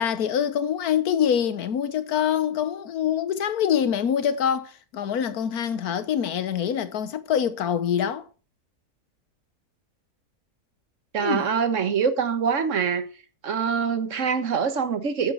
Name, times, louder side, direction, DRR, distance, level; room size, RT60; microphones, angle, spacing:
voice 1, 0.0-8.3 11.2-11.5, left 8 dB, 75° left, 1.5 m, -25 dB
voice 2, 11.1-13.1 13.4-15.3, right 6 dB, 55° right, 1.5 m, -24 dB
8.3 x 8.0 x 6.4 m
omnidirectional pair, 1.6 m